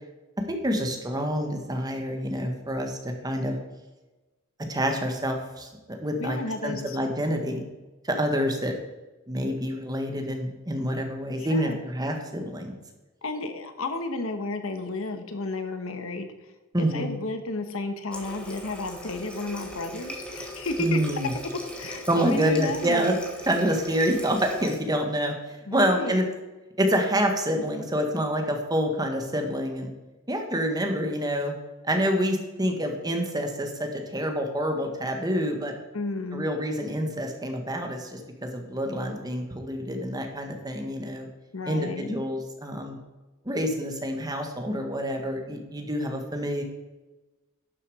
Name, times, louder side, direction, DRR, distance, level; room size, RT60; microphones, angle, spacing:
voice 1, 0.5-3.6 4.7-6.4 6.6-7.6 8.0-8.7 9.3-12.7 16.7-17.1 20.8-21.3 22.1-23.1 23.5-26.3 26.8-29.9 30.3-31.5 31.8-35.7 36.3-41.3 41.7-43.0 43.4-46.6, equal, 20° right, 4 dB, 1.5 m, -27 dB
voice 2, 6.2-7.0 8.4-8.5 11.4-11.8 13.2-16.5 16.8-21.0 21.8-23.1 25.7-26.2 35.9-36.5 41.5-42.2, left 2 dB, 75° left, 7 dB, 1.1 m, -32 dB
Water tap faucet, 18.1-24.8, equal, 5° left, 1.5 m, -39 dB
11.5 x 7.0 x 4.9 m, 1.1 s
head